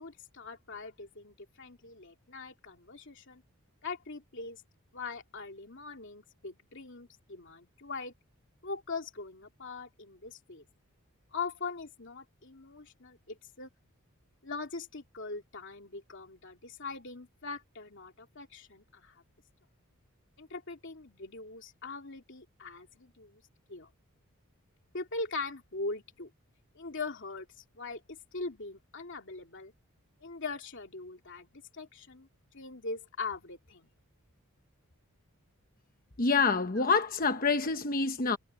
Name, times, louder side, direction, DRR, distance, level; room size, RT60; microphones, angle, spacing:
voice 1, 0.0-3.4 3.8-4.6 4.9-8.1 8.6-10.6 11.3-13.7 14.4-19.2 20.4-23.4 23.7-23.9 24.9-26.3 26.7-29.7 30.2-32.3 32.5-33.9 36.8-36.9, left 3 dB, 55° left, 2.8 m, -41 dB
voice 2, 36.2-38.4, left 4 dB, 40° left, 1.1 m, -27 dB
head